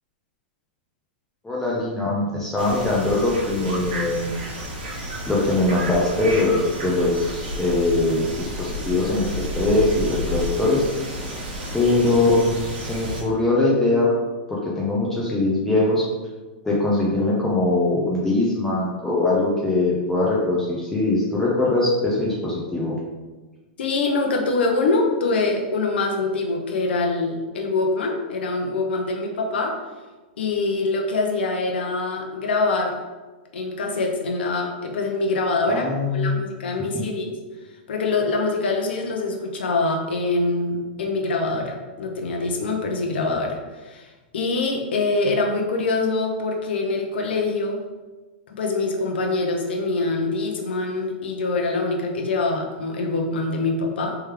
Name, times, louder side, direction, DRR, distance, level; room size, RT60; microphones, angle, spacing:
voice 1, 1.4-4.3 5.3-9.3 9.5-10.8 11.7-12.5 12.8-14.1 14.6-16.0 16.6-22.9 35.7-36.4 36.9-37.0, left 2 dB, 10° left, -6 dB, 0.6 m, -21 dB
sound 1, 2.6-13.2, equal, 65° right, 1.4 m, -31 dB
voice 2, 23.8-29.8 30.4-33.0 33.5-37.3 37.9-47.8 48.6-54.2, left 3 dB, 85° left, 1 dB, 0.6 m, -24 dB
3.4 x 3.1 x 3.3 m, 1.2 s
supercardioid pair, 145°, 6 cm